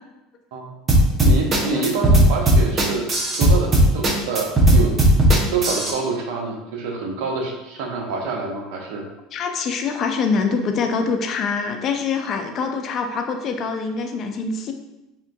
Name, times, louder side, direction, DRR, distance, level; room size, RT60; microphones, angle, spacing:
sound 1, 0.9-5.9, right 1 dB, 30° right, 0.7 m, -15 dB
voice 1, 1.2-3.1 3.4-4.9 5.5-9.1, right 4 dB, 75° right, 1 dB, 0.6 m, -26 dB
voice 2, 9.3-14.7, left 5 dB, 45° left, 5 dB, 0.4 m, -24 dB
3.5 x 2.5 x 2.2 m, 0.97 s
supercardioid pair, 100°, 0 cm